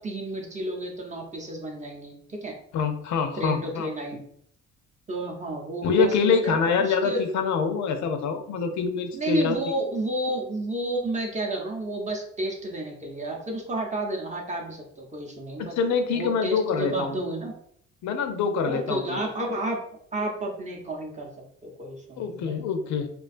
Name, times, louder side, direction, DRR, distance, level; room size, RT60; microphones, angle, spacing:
voice 1, 0.0-2.5 3.4-4.2 5.1-7.2 9.1-15.8 16.1-17.5 18.7-19.8 20.1-21.3 21.6-22.6, right 1 dB, 25° right, 0 dB, 0.6 m, -31 dB
voice 2, 2.7-3.9 5.8-9.6 15.6-17.1 18.0-19.2 22.2-23.1, left 5 dB, 70° left, 7 dB, 0.5 m, -25 dB
2.4 x 2.2 x 2.4 m, 0.66 s
cardioid pair, 90°, 30 cm